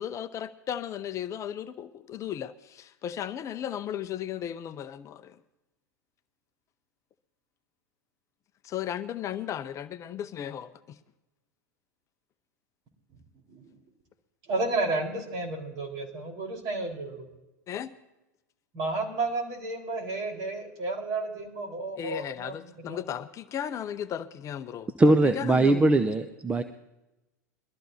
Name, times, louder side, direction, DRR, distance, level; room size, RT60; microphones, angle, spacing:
voice 1, 0.0-5.4 8.6-11.0 17.7-17.9 22.0-24.9 25.4-26.0, left 10 dB, 35° left, 0.6 m, -35 dB
voice 2, 14.5-17.3 18.7-23.0, right 3 dB, 45° right, 4.3 m, -32 dB
voice 3, 25.0-26.6, right 2 dB, 15° right, 0.7 m, -21 dB
22.0 x 13.5 x 2.8 m
hypercardioid pair, 95°, 10 cm